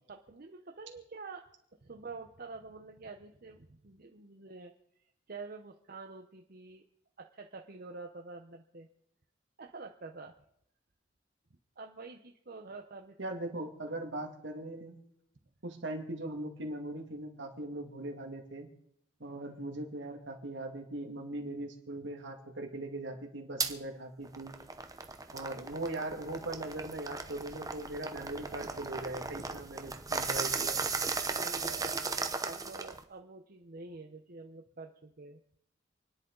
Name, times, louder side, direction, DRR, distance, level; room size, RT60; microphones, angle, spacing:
voice 1, 0.1-1.4 1.8-4.7 5.0-6.8 7.2-8.9 9.6-10.3 11.8-13.1 31.4-35.4, right 3 dB, 55° right, 3 dB, 0.9 m, -47 dB
voice 2, 13.2-14.9 15.6-18.7 19.2-24.5 25.3-30.9, right 1 dB, 70° right, 3 dB, 2.2 m, -40 dB
sound 1, 23.6-23.7 24.2-33.0, right 4 dB, 20° right, 0.8 m, -36 dB
28.0 x 10.5 x 4.0 m, 0.76 s
head